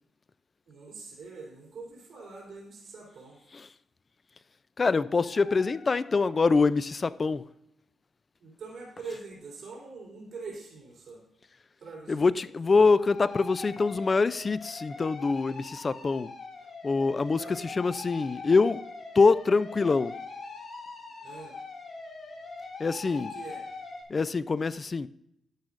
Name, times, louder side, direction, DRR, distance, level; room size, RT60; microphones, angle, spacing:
voice 1, 0.7-3.4 8.4-11.2 11.8-12.4 17.4-17.8 21.2-21.6 23.0-23.6, right 4 dB, 60° right, 3.6 m, -44 dB
voice 2, 4.8-7.5 12.1-16.3 16.8-18.8 19.2-20.1 22.8-23.3 24.1-25.1, left 4 dB, 35° left, 0.4 m, -25 dB
sound 1, 5.2-6.7 12.8-24.0, left 3 dB, 50° left, 3.0 m, -43 dB
11.0 x 10.5 x 2.5 m
cardioid pair, 85°, 0 cm